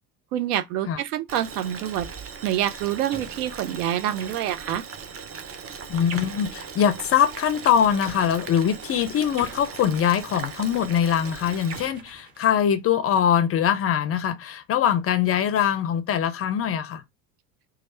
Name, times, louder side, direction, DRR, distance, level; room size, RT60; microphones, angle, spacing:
voice 1, 0.3-2.1 2.4-4.8, right 11 dB, 70° right, 0.7 m, -26 dB
Boiling, 1.3-11.9, right 6 dB, 30° right, 0.7 m, -39 dB
sound 1, 3.1-3.5 4.2-4.8 6.1-6.6 8.0-8.3 9.4-10.2 11.7-12.8, right 4 dB, 50° right, 1.4 m, -42 dB
voice 2, 5.9-17.0, left 9 dB, 30° left, 0.5 m, -22 dB
3.1 x 2.4 x 4.3 m
hypercardioid pair, 70°, 48 cm